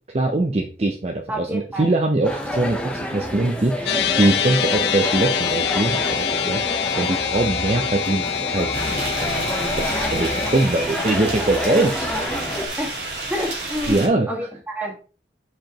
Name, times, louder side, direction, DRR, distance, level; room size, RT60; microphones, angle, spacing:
voice 1, 0.1-9.5 9.8-12.1 13.9-14.3, right 2 dB, 35° right, 3 dB, 0.6 m, -22 dB
voice 2, 1.3-1.8 9.9-10.0 10.4-10.5 12.8-13.0 13.3-15.0, equal, 10° right, -1 dB, 1.7 m, -29 dB
sound 1, 2.2-12.7, left 1 dB, 5° left, 0.9 m, -28 dB
sound 2, 3.9-10.7, left 8 dB, 70° left, 0.5 m, -25 dB
sound 3, 8.7-14.1, right 2 dB, 75° right, 3.7 m, -30 dB
7.5 x 4.9 x 3.0 m, 0.36 s
head